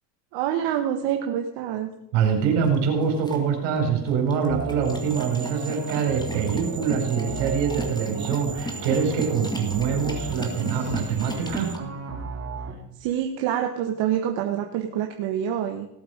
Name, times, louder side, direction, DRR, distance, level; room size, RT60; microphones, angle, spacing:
voice 1, 0.3-1.9 13.0-15.9, right 10 dB, 60° right, 4 dB, 1.6 m, -26 dB
voice 2, 2.1-11.7, right 6 dB, 75° right, 2 dB, 4.9 m, -24 dB
sound 1, 2.3-11.8, left 1 dB, 10° left, 2.1 m, -38 dB
sound 2, 4.5-12.7, right 4 dB, 30° right, 2.8 m, -34 dB
sound 3, 4.8-11.7, right 5 dB, 10° right, 0.6 m, -42 dB
18.0 x 8.0 x 5.2 m, 0.85 s
cardioid pair, 135°, 49 cm